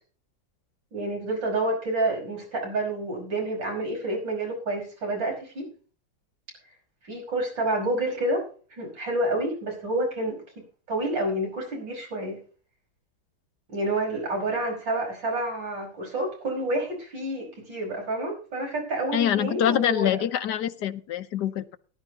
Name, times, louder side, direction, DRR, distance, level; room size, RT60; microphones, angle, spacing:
voice 1, 0.9-5.7 7.0-8.4 8.7-10.4 10.9-12.4 13.7-20.1, right 1 dB, 65° right, 1 dB, 6.1 m, -29 dB
voice 2, 19.1-21.8, left 10 dB, 60° left, 10 dB, 1.4 m, -25 dB
19.0 x 11.0 x 2.9 m, 0.40 s
omnidirectional pair, 2.2 m